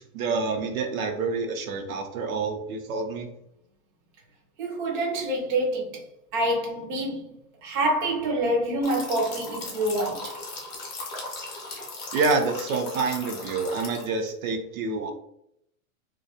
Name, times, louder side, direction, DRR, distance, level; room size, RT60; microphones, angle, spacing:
voice 1, 0.0-3.3 12.1-15.1, right 4 dB, 75° right, 0.7 m, -27 dB
voice 2, 4.6-6.0 6.3-10.4, right 1 dB, 35° right, 0.6 m, -27 dB
sound 1, 8.8-14.3, left 3 dB, 35° left, 0.6 m, -37 dB
2.3 x 2.2 x 2.6 m
supercardioid pair, 160°, 42 cm